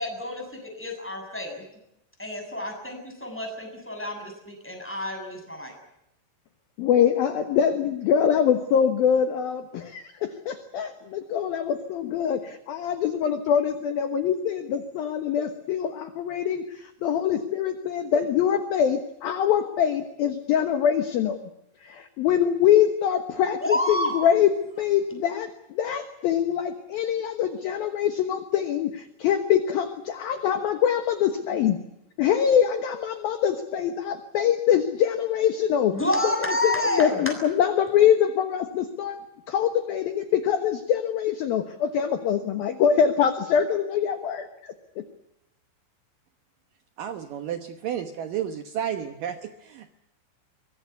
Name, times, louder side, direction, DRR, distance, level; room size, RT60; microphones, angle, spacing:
voice 1, 0.0-1.6 2.2-5.7 23.6-24.2 35.9-37.3, left 1 dB, ahead, 2 dB, 6.9 m, -29 dB
voice 2, 6.8-21.4 21.8-24.5 24.8-31.8 32.2-36.0 36.2-36.3 36.6-39.2 39.5-44.7, left 8 dB, 65° left, 8 dB, 2.5 m, -24 dB
voice 3, 47.0-50.0, right 9 dB, 90° right, 7 dB, 1.9 m, -32 dB
24.0 x 21.0 x 8.2 m, 0.83 s
omnidirectional pair, 5.7 m